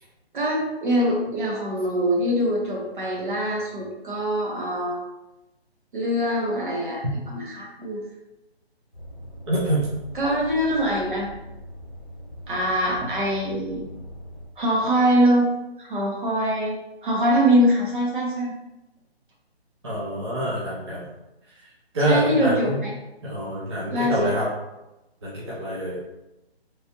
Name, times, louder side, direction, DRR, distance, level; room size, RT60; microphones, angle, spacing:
voice 1, 0.3-5.0 5.9-7.0 7.3-8.0 10.1-11.3 12.5-13.9 14.6-15.5 15.8-16.8 17.0-18.5 22.0-22.9 23.9-24.3, equal, 50° right, -2 dB, 0.9 m, -23 dB
sound 1, 8.9-14.5, equal, 5° right, 0.9 m, -41 dB
voice 2, 9.5-9.9 19.8-21.1 21.5-22.8 23.2-24.5 25.2-26.0, right 1 dB, 25° right, -8 dB, 0.6 m, -26 dB
3.2 x 2.5 x 2.6 m, 0.97 s
figure-of-eight pair, 150°, 32 cm